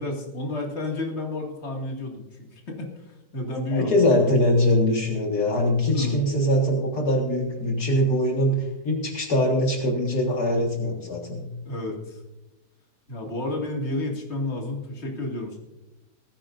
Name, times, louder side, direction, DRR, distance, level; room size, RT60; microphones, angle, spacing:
voice 1, 0.0-3.9 5.9-6.2 11.6-12.2 13.1-15.6, left 2 dB, 40° left, 0 dB, 2.5 m, -31 dB
voice 2, 3.7-11.4, left 1 dB, 65° left, 0 dB, 2.3 m, -22 dB
19.0 x 14.5 x 2.6 m, 1.0 s
omnidirectional pair, 1.8 m